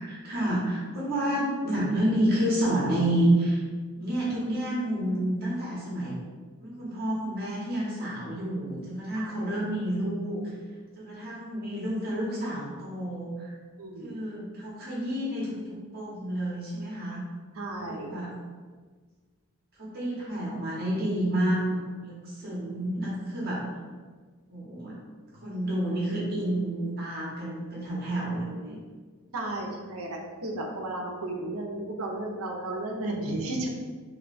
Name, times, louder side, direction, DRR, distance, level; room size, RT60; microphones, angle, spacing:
voice 1, 0.0-3.6 4.0-6.1 6.6-10.4 11.0-13.5 14.0-17.2 17.8-18.3 19.8-23.6 24.5-24.9 25.4-28.8, right 1 dB, 45° right, -6 dB, 0.8 m, -29 dB
voice 2, 9.1-9.5 13.8-14.2 17.5-18.1 29.3-33.7, right 1 dB, 75° right, 0 dB, 0.6 m, -34 dB
3.2 x 2.3 x 3.9 m, 1.5 s
head